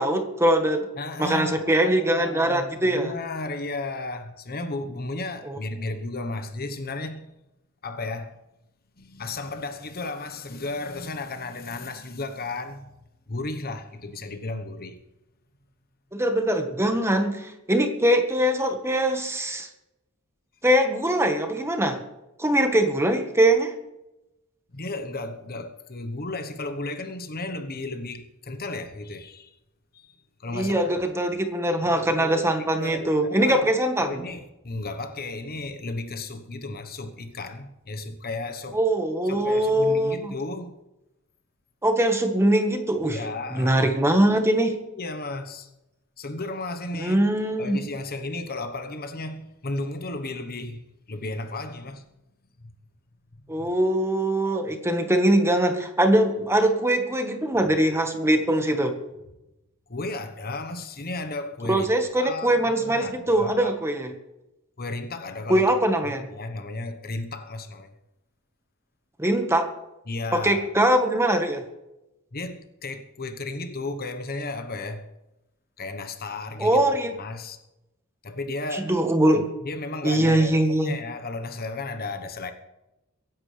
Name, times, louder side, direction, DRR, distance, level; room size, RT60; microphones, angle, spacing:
voice 1, 0.0-0.9 1.2-3.1 5.4-5.6 16.1-19.7 20.6-22.0 22.4-23.7 30.5-34.2 38.7-40.3 41.8-43.2 43.5-44.7 47.0-47.8 53.5-59.0 61.7-64.1 65.5-66.3 69.2-69.7 70.3-71.6 76.6-77.1 78.7-79.5 80.0-80.9, right 1 dB, 10° right, 1.5 m, -22 dB
voice 2, 1.0-7.3 7.8-8.4 9.0-12.9 13.3-15.0 24.7-29.5 29.9-30.1 30.4-30.9 31.8-33.7 34.0-38.8 39.2-40.8 43.0-43.9 44.9-45.7 46.2-47.2 47.6-52.1 52.6-52.7 53.6-53.7 59.9-61.9 62.2-63.8 64.8-65.7 66.1-67.9 70.1-70.7 72.3-75.1 75.8-76.8 77.2-77.6 78.2-78.9 79.6-82.5, left 2 dB, 45° left, 1.2 m, -34 dB
23.5 x 11.0 x 3.4 m
head